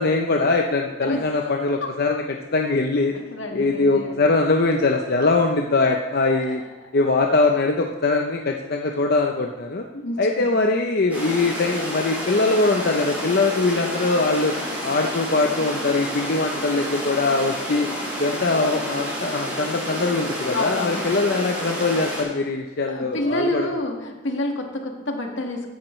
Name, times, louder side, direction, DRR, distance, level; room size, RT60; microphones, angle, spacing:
voice 1, 0.0-3.1 3.5-6.6 6.9-9.8 10.2-14.6 14.8-17.9 18.2-23.7, left 3 dB, 55° left, 2 dB, 0.7 m, -22 dB
voice 2, 3.1-4.3 6.3-6.5 9.9-10.5 20.5-21.2 22.8-25.7, left 1 dB, 80° left, 2 dB, 1.8 m, -28 dB
sound 1, 11.1-22.2, equal, 10° right, 4.9 m, -30 dB
15.5 x 10.5 x 3.2 m, 1.1 s
head